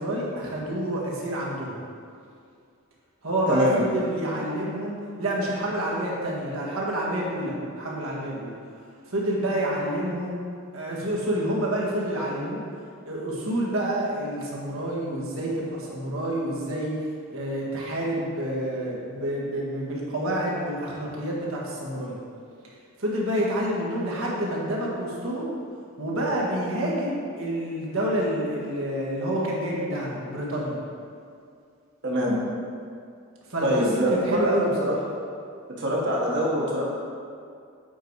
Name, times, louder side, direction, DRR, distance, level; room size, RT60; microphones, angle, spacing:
voice 1, 0.0-1.8 3.2-8.5 9.1-10.4 10.7-12.6 13.0-16.9 17.3-22.2 23.0-25.5 26.0-30.8 33.5-35.0, right 1 dB, 70° right, -4 dB, 1.7 m, -28 dB
voice 2, 3.5-3.8 32.0-32.4 33.6-34.5 34.8-34.9 35.8-36.8, equal, 55° right, -4 dB, 1.6 m, -24 dB
8.1 x 4.8 x 4.7 m, 2.3 s
head